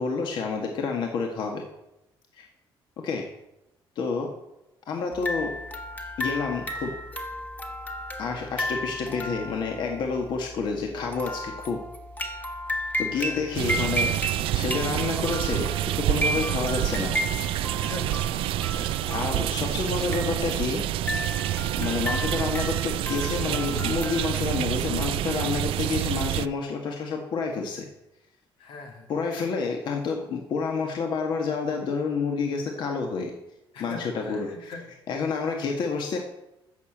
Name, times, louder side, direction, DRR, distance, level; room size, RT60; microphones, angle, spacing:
voice 1, 0.0-1.6 2.3-2.5 3.0-3.3 3.9-4.3 4.9-5.6 6.2-6.9 8.2-11.8 13.0-14.1 14.5-17.1 19.1-20.8 21.8-27.9 29.1-33.3 33.8-34.5 35.1-36.2, left 5 dB, 60° left, 2 dB, 1.7 m, -29 dB
sound 1, 5.1-24.5, equal, 20° left, 1.4 m, -34 dB
sound 2, 13.5-26.5, right 14 dB, 85° right, 0.4 m, -28 dB
voice 2, 16.6-17.1 17.6-18.2 18.7-19.2 28.6-29.1 33.7-34.9, left 3 dB, 85° left, 2 dB, 3.2 m, -42 dB
15.0 x 6.8 x 7.4 m, 0.89 s
cardioid pair, 160°, 9 cm